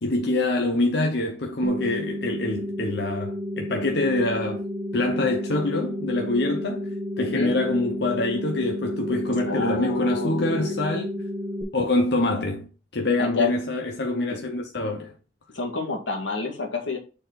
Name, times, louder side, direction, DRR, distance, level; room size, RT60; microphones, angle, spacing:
voice 1, 0.0-4.6 4.9-11.2 11.7-12.7 12.9-15.1, left 2 dB, 60° left, 0.9 m, -25 dB
sound 1, 1.6-11.6, left 1 dB, 20° right, 1.3 m, -32 dB
voice 2, 7.2-7.6 9.4-10.9 13.2-13.5 15.5-17.0, left 3 dB, 90° left, 2.0 m, -28 dB
6.7 x 4.5 x 4.0 m
head